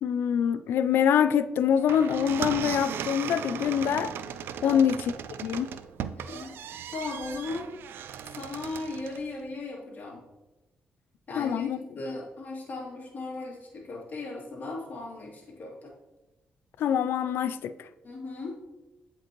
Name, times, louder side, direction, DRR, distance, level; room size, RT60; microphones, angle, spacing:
voice 1, 0.0-4.1 4.6-5.0 5.4-5.7 11.4-11.8 16.8-17.9, left 8 dB, 80° left, 0.3 m, -25 dB
sound 1, 1.7-9.3, right 9 dB, 80° right, 0.3 m, -37 dB
voice 2, 6.1-7.7 8.4-10.2 11.3-15.9 18.0-18.6, left 3 dB, 50° left, 2.5 m, -37 dB
8.5 x 5.2 x 2.9 m
cardioid pair, 70°, 4 cm